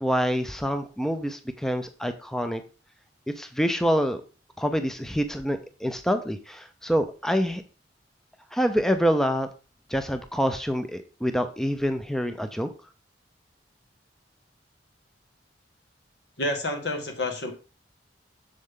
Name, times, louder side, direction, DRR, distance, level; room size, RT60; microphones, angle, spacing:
voice 1, 0.0-2.6 3.4-4.2 4.6-7.6 8.5-9.5 9.9-12.7, equal, 5° left, 8 dB, 0.6 m, -26 dB
voice 2, 16.4-17.5, left 2 dB, 75° left, 4 dB, 1.9 m, -29 dB
7.6 x 6.6 x 3.7 m, 0.34 s
head